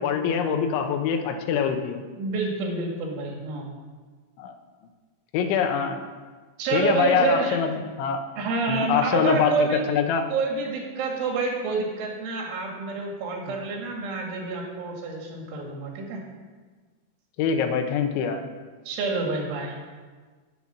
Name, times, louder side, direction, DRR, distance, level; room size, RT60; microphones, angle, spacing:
voice 1, 0.0-2.0 4.4-4.5 5.3-6.0 6.7-8.2 8.7-10.2 13.5-13.6 17.4-18.4, left 7 dB, 80° left, 6 dB, 3.5 m, -24 dB
voice 2, 2.2-3.7 6.6-7.6 8.4-9.9 10.3-16.2 18.9-19.8, right 4 dB, 85° right, 0 dB, 4.8 m, -28 dB
11.0 x 8.1 x 9.7 m, 1.4 s
omnidirectional pair, 5.4 m